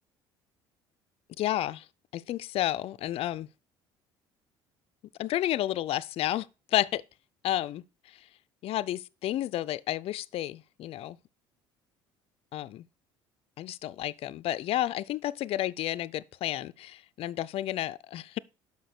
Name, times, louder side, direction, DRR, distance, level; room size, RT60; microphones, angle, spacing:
voice 1, 1.4-1.9 2.1-3.5 5.2-7.0 7.4-8.3 8.6-11.2 12.5-12.9 13.6-18.4, left 13 dB, 55° left, 0.4 m, -31 dB
6.0 x 5.3 x 6.6 m
supercardioid pair, 70°, 12 cm